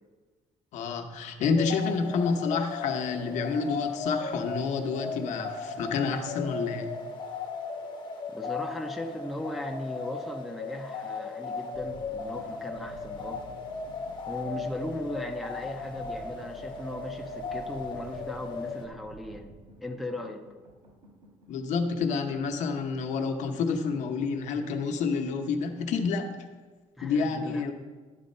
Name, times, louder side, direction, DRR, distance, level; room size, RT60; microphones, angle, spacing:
voice 1, 0.7-6.9 21.5-26.3 27.0-27.7, left 5 dB, 65° left, 5 dB, 0.8 m, -29 dB
sound 1, 1.6-18.9, left 4 dB, 35° left, 0.8 m, -36 dB
voice 2, 8.3-13.4 14.3-19.5 19.8-20.4 27.0-27.7, left 1 dB, ahead, 2 dB, 0.5 m, -37 dB
sound 2, 11.7-21.7, equal, 50° right, 1.7 m, -50 dB
11.5 x 4.1 x 5.3 m, 1.4 s
cardioid pair, 175°, 13 cm